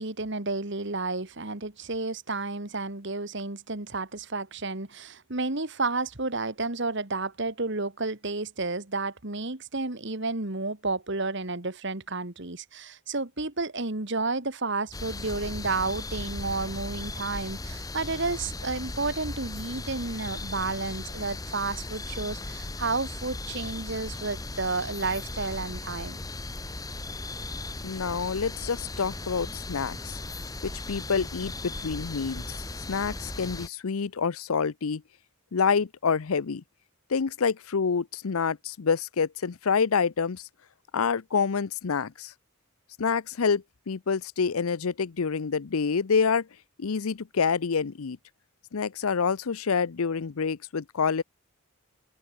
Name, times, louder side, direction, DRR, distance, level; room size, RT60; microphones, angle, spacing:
voice 1, 0.0-26.2, right 3 dB, 55° right, 1.9 m, -31 dB
sound 1, 14.9-33.7, left 2 dB, 15° left, 1.4 m, -37 dB
voice 2, 27.8-30.2 30.6-32.6 32.9-35.0 35.5-36.6 37.1-40.5 40.9-42.3 43.0-46.5 46.8-48.2 48.7-51.2, left 5 dB, 80° left, 0.6 m, -27 dB
head